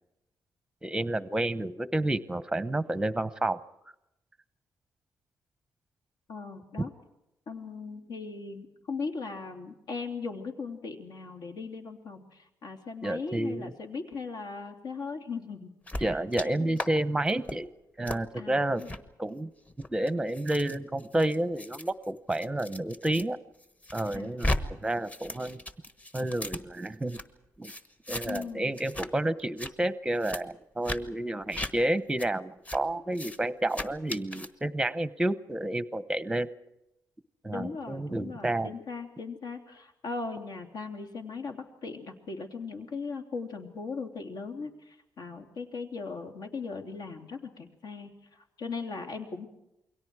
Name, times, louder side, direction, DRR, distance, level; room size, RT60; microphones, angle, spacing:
voice 1, 0.8-3.6 13.0-13.7 16.0-17.7 18.0-18.8 19.2-19.5 19.9-23.4 23.9-25.6 26.1-27.2 27.6-27.7 28.1-36.5 37.4-38.7, right 1 dB, 10° right, 14 dB, 0.8 m, -30 dB
voice 2, 6.3-6.9 7.5-16.8 18.3-18.9 24.1-24.4 28.2-28.8 37.4-49.5, left 4 dB, 75° left, 5 dB, 3.2 m, -39 dB
sound 1, 15.9-16.5 16.8-16.9 17.3-17.6 18.1-18.2 18.8-19.0 19.7-23.2 23.6-24.6 24.9-27.2 27.6-28.5 28.8-29.1 29.4-29.7 30.2-30.4 30.8-31.0 31.5-31.7 32.2-32.3 32.7-32.8 33.1-33.4 33.7-34.5, left 1 dB, 20° left, 1.2 m, -36 dB
28.5 x 23.0 x 4.8 m, 0.87 s
wide cardioid pair, 175°, 7 cm